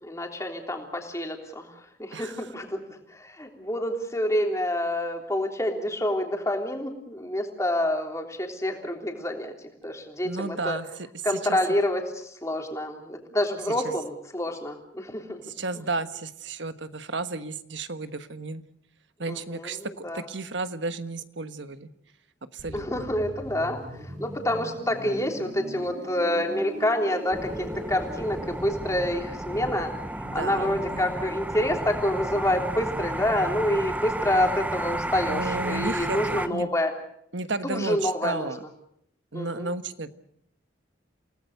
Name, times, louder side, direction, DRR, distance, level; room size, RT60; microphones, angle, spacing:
voice 1, 0.0-1.7 2.0-2.8 3.1-9.5 9.8-10.8 11.2-15.4 19.3-20.2 22.7-23.8 24.2-29.9 30.3-36.9 37.6-38.5 39.3-39.7, left 1 dB, 15° left, 3 dB, 3.4 m, -27 dB
voice 2, 2.1-2.5 10.2-10.9 11.3-11.6 13.8-13.9 15.5-18.6 19.2-19.8 20.1-21.9 22.5-23.1 30.2-31.1 35.3-36.7 37.3-38.6 39.3-40.1, right 3 dB, 70° right, 10 dB, 1.4 m, -33 dB
sound 1, 22.6-32.2 32.5-32.7, right 1 dB, 40° right, 4.9 m, -41 dB
sound 2, 27.3-36.5, right 1 dB, 10° right, 0.9 m, -32 dB
29.0 x 18.5 x 6.7 m, 0.72 s
head